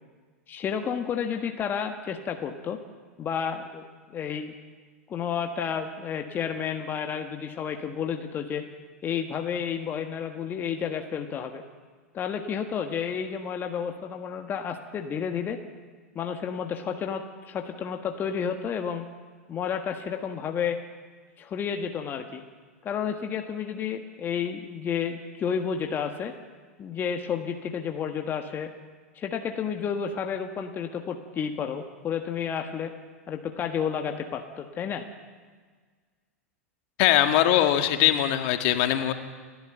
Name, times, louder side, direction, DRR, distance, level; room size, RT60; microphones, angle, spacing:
voice 1, 0.5-2.8 3.2-3.8 4.1-4.5 5.1-8.6 9.0-11.6 12.1-15.6 16.1-19.1 19.5-20.8 21.4-22.4 22.8-26.3 26.8-28.7 29.1-32.9 33.3-35.0, left 7 dB, 25° left, 4 dB, 1.6 m, -31 dB
voice 2, 37.0-39.1, left 12 dB, 50° left, 6 dB, 1.8 m, -21 dB
29.5 x 12.0 x 8.0 m, 1.5 s
figure-of-eight pair, 95°, 8 cm